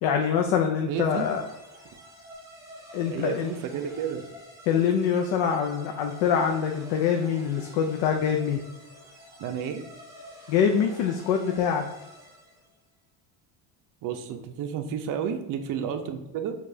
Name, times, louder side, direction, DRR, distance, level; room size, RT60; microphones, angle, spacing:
voice 1, 0.0-1.5 2.9-3.5 4.7-8.6 10.5-11.8, left 7 dB, 75° left, 3 dB, 0.5 m, -24 dB
voice 2, 0.8-1.3 3.1-4.2 9.4-9.8 14.0-16.6, right 8 dB, 50° right, 6 dB, 0.5 m, -31 dB
sound 1, 1.1-12.8, equal, 5° right, 0.8 m, -48 dB
4.6 x 2.4 x 2.6 m, 0.99 s
cardioid pair, 115°, 44 cm